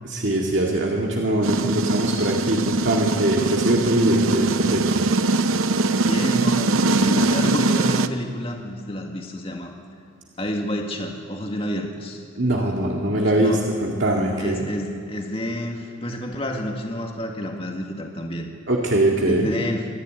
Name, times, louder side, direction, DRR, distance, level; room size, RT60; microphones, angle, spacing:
voice 1, 0.1-5.1 12.4-14.6 18.7-19.5, right 1 dB, 60° right, -1 dB, 2.1 m, -22 dB
sound 1, 1.4-8.1, right 3 dB, 80° right, 0.8 m, -22 dB
voice 2, 6.0-9.7 10.4-13.6 14.4-18.5 19.3-19.9, equal, 25° left, 2 dB, 2.0 m, -29 dB
26.0 x 11.0 x 9.4 m, 2.3 s
head